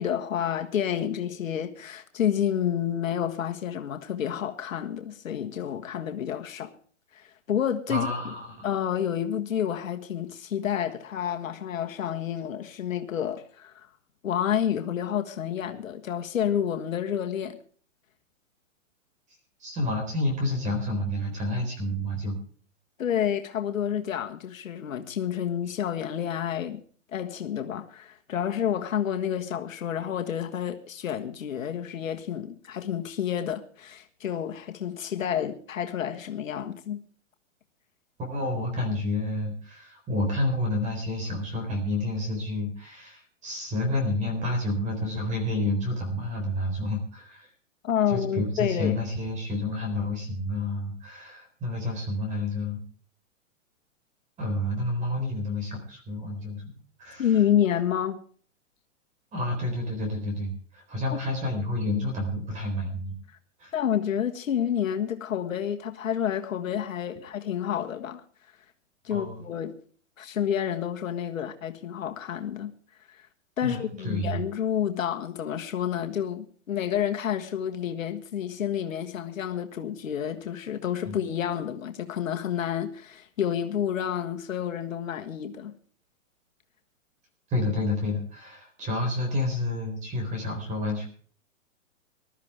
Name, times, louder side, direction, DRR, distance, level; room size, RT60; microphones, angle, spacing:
voice 1, 0.0-6.8 7.1-8.1 8.6-13.9 14.2-17.6 23.0-26.8 27.1-37.0 47.8-48.9 57.2-58.2 61.1-61.2 63.7-68.2 69.0-69.8 70.2-72.7 73.1-73.3 73.6-85.7, left 9 dB, 80° left, 1.6 m, -29 dB
voice 2, 7.9-8.7 19.6-22.4 38.3-47.5 48.1-52.8 54.4-56.7 57.0-57.3 59.3-63.2 63.6-63.7 69.1-69.4 73.6-74.4 81.1-81.2 87.5-91.1, left 1 dB, 20° right, 4.1 m, -29 dB
20.5 x 12.5 x 3.4 m
hypercardioid pair, 150°, 39 cm